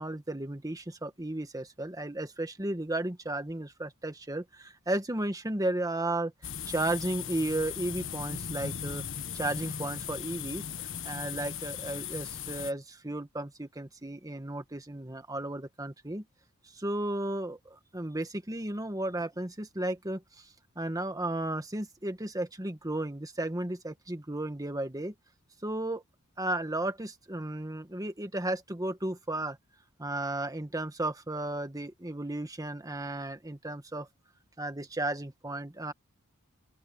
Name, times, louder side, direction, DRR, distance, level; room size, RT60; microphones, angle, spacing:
voice 1, 0.0-6.3 6.7-9.0 9.3-16.2 16.7-20.5 20.7-25.1 25.6-26.0 26.4-29.6 30.0-34.1 34.6-35.9, right 1 dB, 15° right, 1.6 m, -34 dB
sound 1, 6.4-12.7, left 7 dB, 65° left, 1.6 m, -38 dB
open air
head